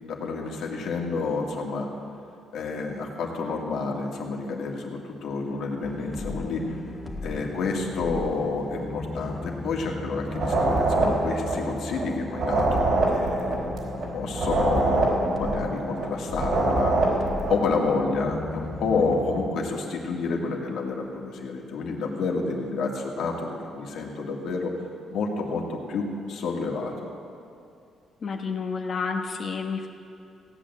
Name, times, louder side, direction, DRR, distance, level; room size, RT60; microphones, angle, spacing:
voice 1, 0.0-1.9 2.5-6.8 7.2-13.6 14.1-17.0 17.5-24.7 25.1-27.1, left 4 dB, 75° left, 0 dB, 2.2 m, -29 dB
sound 1, 5.8-19.5, left 3 dB, 25° left, 1.6 m, -36 dB
sound 2, 10.3-12.1 12.3-16.1 16.3-17.7, right 2 dB, 70° right, 4.1 m, -24 dB
voice 2, 28.2-29.9, left 5 dB, 50° left, 1 dB, 1.2 m, -30 dB
17.0 x 8.9 x 7.4 m, 2.6 s
cardioid pair, 90°, 0 cm